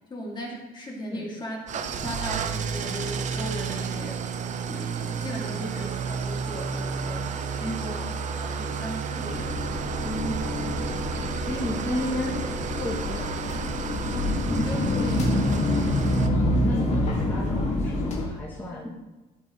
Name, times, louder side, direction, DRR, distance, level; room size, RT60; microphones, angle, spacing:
voice 1, 0.1-4.2 4.7-7.3 7.6-9.5 14.5-15.6, equal, 25° left, -3 dB, 2.2 m, -36 dB
Engine starting / Idling, 1.7-16.3, right 6 dB, 45° right, 0.6 m, -32 dB
sound 1, 9.3-18.3, left 1 dB, 45° left, 1.7 m, -27 dB
voice 2, 10.0-10.8 11.1-12.4 12.8-13.3 16.4-18.9, left 1 dB, 10° left, -7 dB, 1.9 m, -33 dB
12.0 x 5.6 x 3.0 m, 1.1 s
cardioid pair, 110°, 17 cm